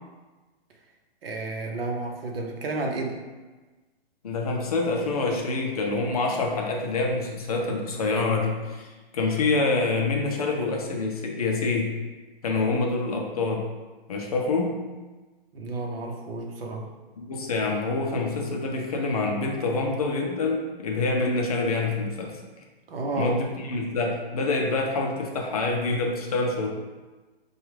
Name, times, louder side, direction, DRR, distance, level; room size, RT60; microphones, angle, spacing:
voice 1, 1.2-3.2 12.6-12.9 15.5-16.9 22.9-23.4, right 2 dB, 70° right, 2 dB, 0.8 m, -31 dB
voice 2, 4.2-12.0 12.4-13.7 14.1-14.8 17.2-22.4 23.2-26.7, left 3 dB, 40° left, 0 dB, 0.5 m, -26 dB
4.6 x 2.3 x 3.1 m, 1.2 s
hypercardioid pair, 170°, 30 cm